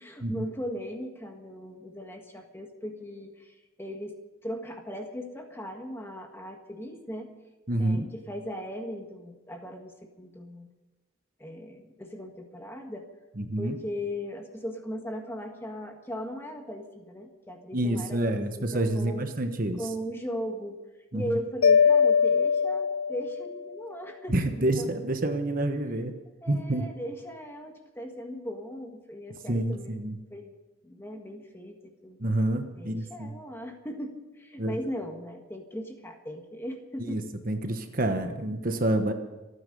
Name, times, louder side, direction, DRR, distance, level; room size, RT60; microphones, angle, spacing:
voice 1, 0.0-4.2 4.4-7.3 7.8-10.7 11.4-13.1 13.6-19.3 19.7-20.8 21.1-24.9 26.4-29.9 30.3-30.6 30.8-32.2 32.8-37.2, equal, 10° left, 3 dB, 1.7 m, -38 dB
voice 2, 7.7-8.1 13.4-13.8 17.7-19.8 21.1-21.4 24.3-26.1 26.5-26.9 29.5-30.2 32.2-33.4 34.6-34.8 37.1-39.1, right 1 dB, 40° right, 6 dB, 1.2 m, -28 dB
Mallet percussion, 21.6-23.7, left 6 dB, 90° left, 0.4 m, -22 dB
27.0 x 9.7 x 5.4 m, 1.1 s
head